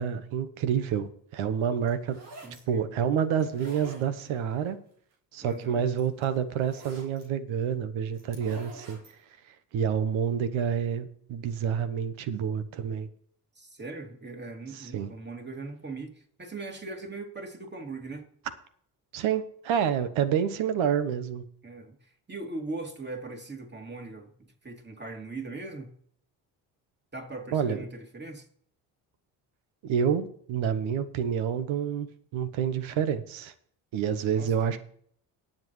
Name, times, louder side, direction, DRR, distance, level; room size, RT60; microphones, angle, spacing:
voice 1, 0.0-2.2 2.7-4.8 5.3-9.0 9.7-13.1 14.8-15.1 19.1-21.4 27.5-27.8 29.8-33.5 33.9-34.8, right 8 dB, 70° right, 11 dB, 1.2 m, -28 dB
sound 1, 1.9-2.6 3.4-4.4 5.6-5.7 6.0-7.2 8.1-9.1, right 2 dB, 85° right, 3.1 m, -46 dB
voice 2, 2.4-2.9 5.4-5.8 13.5-18.3 21.6-25.9 27.1-28.5 34.3-34.8, right 3 dB, 20° right, 3 dB, 2.8 m, -40 dB
19.0 x 7.7 x 3.2 m, 0.62 s
hypercardioid pair, 55°, 50 cm